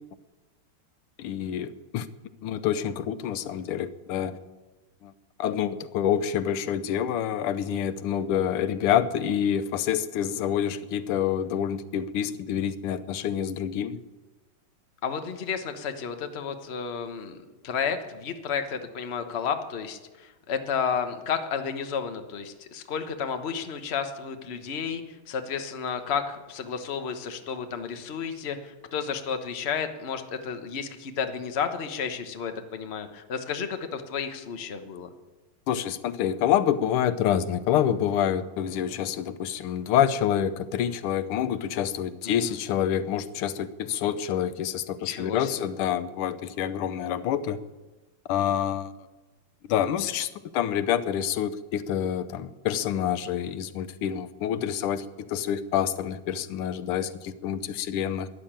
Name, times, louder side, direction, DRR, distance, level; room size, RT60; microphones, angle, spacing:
voice 1, 1.2-2.1 2.4-4.4 5.0-5.1 5.4-14.0 35.7-47.6 48.3-48.9 49.7-58.3, left 9 dB, 90° left, 14 dB, 1.7 m, -27 dB
voice 2, 15.0-35.1 42.2-42.6 45.0-45.7, left 6 dB, 40° left, 7 dB, 1.1 m, -32 dB
13.0 x 11.0 x 8.8 m, 1.2 s
omnidirectional pair, 2.3 m